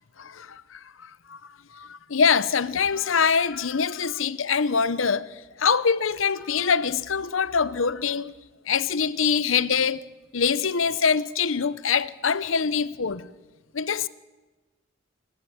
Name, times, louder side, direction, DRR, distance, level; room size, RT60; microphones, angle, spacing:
voice 1, 0.2-1.4 1.7-5.3 5.6-8.3 8.7-10.0 10.3-13.3 13.7-14.1, left 6 dB, 80° left, 0.8 m, -24 dB
27.0 x 12.5 x 8.8 m
head